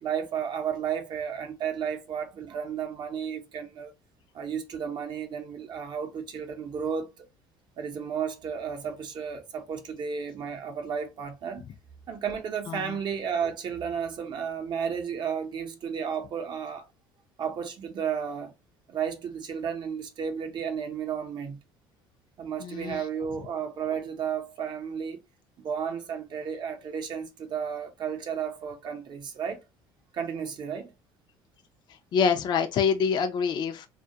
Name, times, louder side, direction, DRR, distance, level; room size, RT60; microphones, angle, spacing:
voice 1, 0.0-3.9 4.3-7.3 7.8-11.7 12.1-16.9 17.4-18.5 18.9-21.6 22.4-25.2 25.6-29.6 30.1-30.9, right 7 dB, 50° right, 0.7 m, -33 dB
voice 2, 12.7-13.0 22.6-23.0 32.1-33.9, left 6 dB, 45° left, 0.4 m, -26 dB
2.2 x 2.1 x 2.7 m
supercardioid pair, 95°, 10 cm